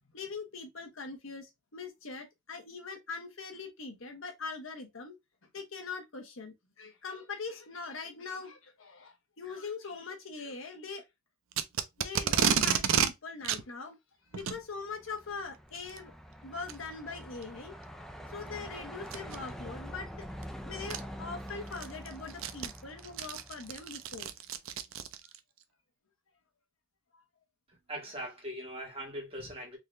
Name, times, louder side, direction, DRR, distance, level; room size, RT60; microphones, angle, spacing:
voice 1, 0.1-5.2 5.5-11.0 12.0-14.0 14.3-16.1 16.4-17.8 18.3-20.3 20.6-24.3 27.1-27.2, left 4 dB, 70° left, 1.0 m, -42 dB
Packing tape duct tape, 11.5-13.1 13.4-13.6 14.3-14.6 15.7-16.0 16.7-16.8 17.4-17.5 19.1-19.4 20.4-20.5 20.9-21.0 21.5-25.4, right 8 dB, 75° right, 0.5 m, -30 dB
Truck, 14.7-24.1, equal, ahead, 0.3 m, -45 dB
voice 2, 27.9-29.8, right 1 dB, 25° right, 1.5 m, -40 dB
3.7 x 2.7 x 3.2 m
head